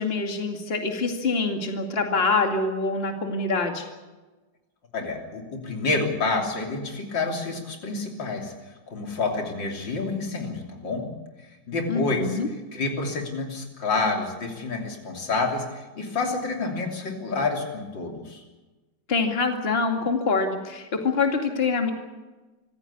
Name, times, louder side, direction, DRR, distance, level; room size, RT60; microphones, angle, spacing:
voice 1, 0.0-3.8 11.9-12.5 19.1-21.9, left 4 dB, 35° left, 4 dB, 2.4 m, -25 dB
voice 2, 4.9-8.5 8.9-11.1 11.7-12.4 12.7-18.4, left 3 dB, 85° left, 2 dB, 3.9 m, -28 dB
25.5 x 15.5 x 8.5 m, 1.2 s
omnidirectional pair, 1.9 m